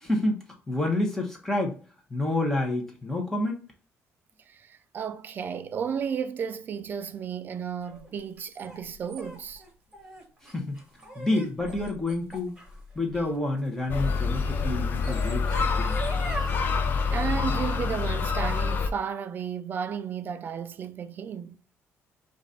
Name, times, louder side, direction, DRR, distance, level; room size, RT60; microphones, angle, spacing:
voice 1, 0.0-1.8 2.1-3.6 10.4-10.8 11.1-12.6 12.9-16.0, left 2 dB, 10° left, 1.1 m, -28 dB
voice 2, 4.5-9.6 17.1-21.6, right 7 dB, 40° right, 0.4 m, -33 dB
sound 1, 7.8-14.0 14.8-16.6, right 1 dB, 15° right, 1.3 m, -41 dB
sound 2, 13.9-18.9, left 5 dB, 40° left, 0.6 m, -26 dB
5.1 x 2.6 x 4.1 m
cardioid pair, 160°, 5 cm